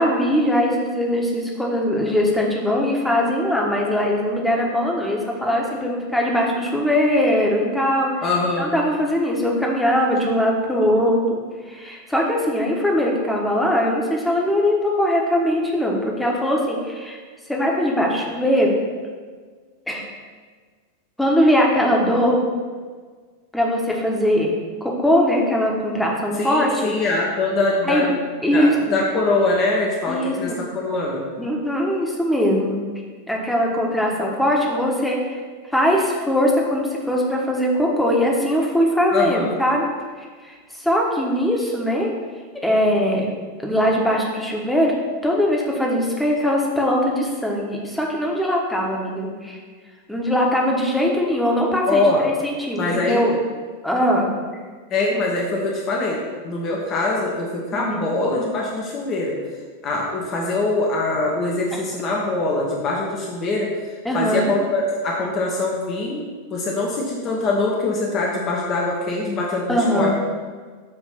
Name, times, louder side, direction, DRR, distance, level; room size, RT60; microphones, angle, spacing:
voice 1, 0.0-8.1 8.6-11.4 11.7-17.2 17.5-18.7 19.9-20.0 21.2-22.4 23.5-24.5 25.0-26.9 27.8-28.1 28.4-29.0 30.1-30.4 31.4-32.8 33.3-35.4 35.7-39.8 40.2-42.1 42.6-43.3 43.6-44.9 45.2-49.6 50.1-53.4 53.8-54.3 57.7-58.1 64.0-64.5 69.7-70.1, equal, 5° left, -2 dB, 1.3 m, -21 dB
voice 2, 8.2-8.7 26.4-28.1 28.5-31.2 39.1-39.5 51.9-52.2 52.8-53.3 54.9-59.4 59.8-63.7 64.1-66.2 66.5-70.1, left 2 dB, 35° left, -2 dB, 1.1 m, -23 dB
7.8 x 3.1 x 5.7 m, 1.5 s
figure-of-eight pair, 90°, 0 cm